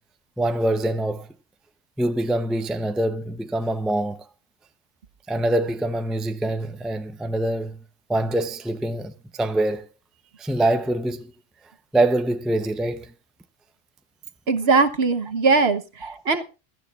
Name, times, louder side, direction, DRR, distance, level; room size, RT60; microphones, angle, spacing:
voice 1, 0.4-1.3 2.0-4.2 5.3-7.8 8.1-9.8 10.4-11.3 11.9-13.1 16.0-16.2, right 1 dB, ahead, 0.5 m, -24 dB
voice 2, 14.5-16.4, right 4 dB, 55° right, 1.3 m, -20 dB
22.5 x 12.0 x 2.4 m
omnidirectional pair, 1.3 m